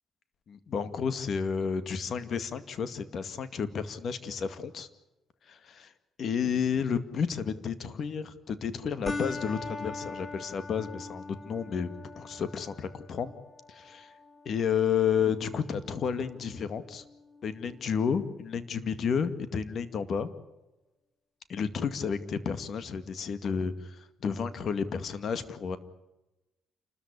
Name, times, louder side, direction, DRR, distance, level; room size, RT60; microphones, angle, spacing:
voice 1, 0.5-4.9 5.5-5.9 6.2-11.9 12.1-13.3 13.7-14.1 14.5-17.0 17.4-20.3 21.5-25.8, left 6 dB, 60° left, 12 dB, 2.2 m, -31 dB
sound 1, 9.1-18.0, left 3 dB, 20° left, 3.1 m, -43 dB
28.5 x 14.0 x 9.9 m, 1.0 s
cardioid pair, 90°, 0 cm